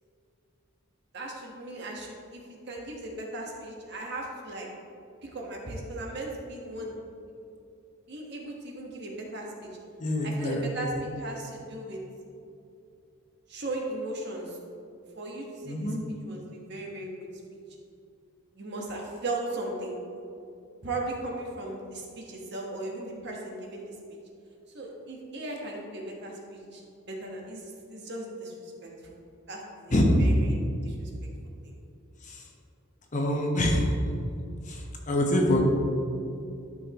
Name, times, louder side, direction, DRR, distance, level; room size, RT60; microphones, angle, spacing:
voice 1, 1.1-4.7 5.2-6.9 8.1-9.7 10.2-12.0 13.5-14.6 15.2-15.9 16.3-17.1 18.5-20.0 20.8-23.9 24.7-26.8 27.1-29.2 29.5-30.5 30.8-31.1 31.6-31.7, right 2 dB, 55° right, -1 dB, 1.3 m, -37 dB
voice 2, 10.0-10.6 15.6-16.0 29.9-30.2 32.2-32.4 33.1-33.9 34.7-35.6, left 1 dB, 35° left, 0 dB, 0.9 m, -25 dB
12.0 x 5.5 x 3.0 m, 2.6 s
head